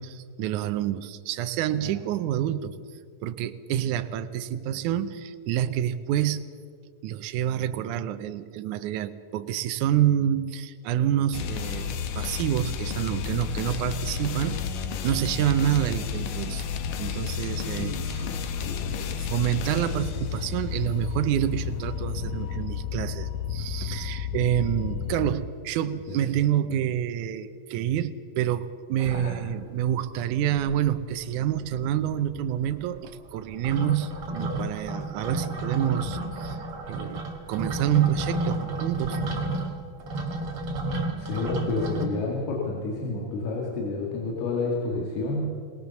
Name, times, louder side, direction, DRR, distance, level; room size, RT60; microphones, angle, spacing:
voice 1, 0.0-2.8 3.2-6.4 7.0-14.6 15.0-16.7 17.0-18.2 19.3-39.2, right 11 dB, 80° right, 9 dB, 1.8 m, -28 dB
sound 1, 11.3-25.4, left 7 dB, 70° left, 2.4 m, -32 dB
voice 2, 17.8-18.4 18.6-19.1 29.1-29.3 41.2-45.5, left 3 dB, 85° left, -2 dB, 4.2 m, -30 dB
sound 2, 29.0-29.9 30.3-30.4 30.6-31.2 31.5-42.1, right 2 dB, 40° right, 2.5 m, -32 dB
19.5 x 19.5 x 7.0 m, 2.1 s
omnidirectional pair, 4.4 m